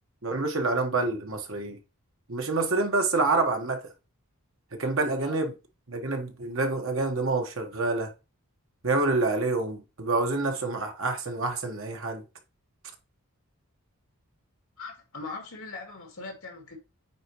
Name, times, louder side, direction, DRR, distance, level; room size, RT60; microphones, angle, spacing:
voice 1, 0.2-1.8 2.3-3.9 4.7-5.5 5.9-8.1 8.8-12.2, right 3 dB, 60° right, 1.4 m, -27 dB
voice 2, 4.8-5.4 14.8-16.8, left 3 dB, 65° left, 2.7 m, -41 dB
8.8 x 4.4 x 3.0 m
head